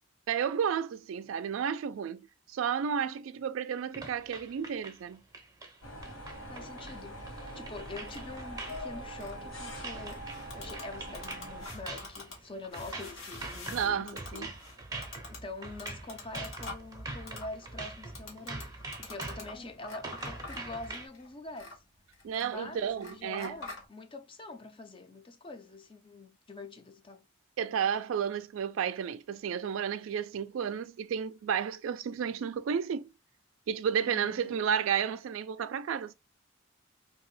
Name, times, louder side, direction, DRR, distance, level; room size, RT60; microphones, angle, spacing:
voice 1, 0.3-5.2 13.7-14.5 22.2-23.6 27.6-33.1 33.7-36.1, right 7 dB, 70° right, 0.3 m, -32 dB
sound 1, 3.9-21.1, right 2 dB, 20° right, 0.6 m, -44 dB
sound 2, 5.8-11.7, equal, 75° left, 1.5 m, -43 dB
voice 2, 6.5-10.2 10.5-14.6 15.3-21.8 22.4-27.2 34.0-34.6, left 2 dB, 25° left, 0.5 m, -45 dB
sound 3, 7.8-23.9, left 3 dB, 90° left, 1.2 m, -48 dB
2.9 x 2.7 x 3.1 m
head